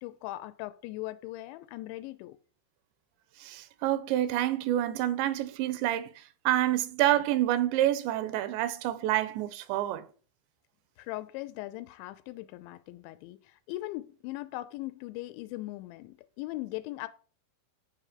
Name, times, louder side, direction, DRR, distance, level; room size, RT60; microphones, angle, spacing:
voice 1, 0.0-2.4 11.0-17.1, left 17 dB, 90° left, 3.0 m, -39 dB
voice 2, 3.4-6.1 6.5-10.0, right 13 dB, 85° right, 3.0 m, -28 dB
10.5 x 4.9 x 6.6 m
omnidirectional pair, 5.1 m